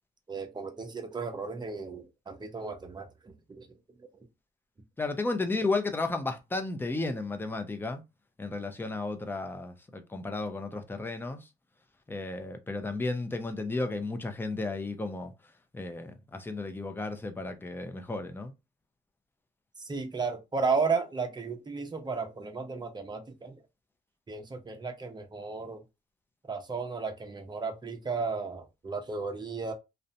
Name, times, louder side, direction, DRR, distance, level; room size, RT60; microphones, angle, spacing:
voice 1, 0.3-3.7 19.8-23.5 24.3-25.8 26.5-29.7, right 4 dB, 20° right, 0.7 m, -34 dB
voice 2, 5.0-8.0 8.4-11.5 12.1-15.3 15.7-18.5, left 3 dB, 10° left, 0.5 m, -33 dB
2.6 x 2.1 x 2.5 m
cardioid pair, 90°, 20 cm